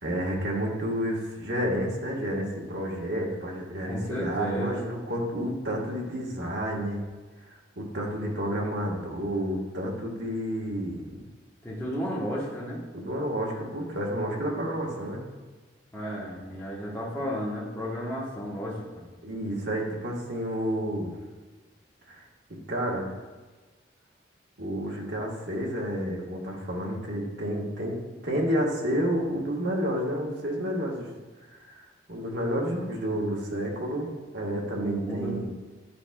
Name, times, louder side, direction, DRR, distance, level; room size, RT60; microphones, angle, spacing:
voice 1, 0.0-7.0 7.5-11.0 12.9-15.2 19.2-21.1 22.1-22.2 22.5-23.1 24.6-28.0 28.2-31.1 31.5-31.8 32.1-35.5, equal, 65° right, -2 dB, 1.3 m, -30 dB
voice 2, 3.9-4.9 11.6-12.8 15.9-18.8 34.8-35.4, equal, 10° left, -6 dB, 1.0 m, -33 dB
10.0 x 4.7 x 2.2 m, 1.3 s
head